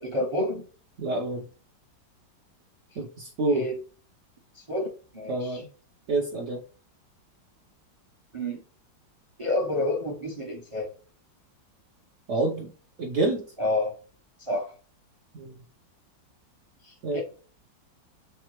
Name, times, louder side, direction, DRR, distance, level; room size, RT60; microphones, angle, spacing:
voice 1, 0.0-0.6 3.5-3.8 4.5-5.6 8.3-8.6 9.4-10.9 13.6-14.0 14.4-14.7 16.8-17.2, left 1 dB, 35° right, 0 dB, 0.5 m, -29 dB
voice 2, 1.0-1.5 3.0-3.6 5.3-5.7 6.1-6.6 12.3-12.7 13.0-13.5 15.3-15.6 17.0-17.2, right 2 dB, 75° right, 1 dB, 0.6 m, -27 dB
3.5 x 3.2 x 3.0 m, 0.38 s
omnidirectional pair, 2.0 m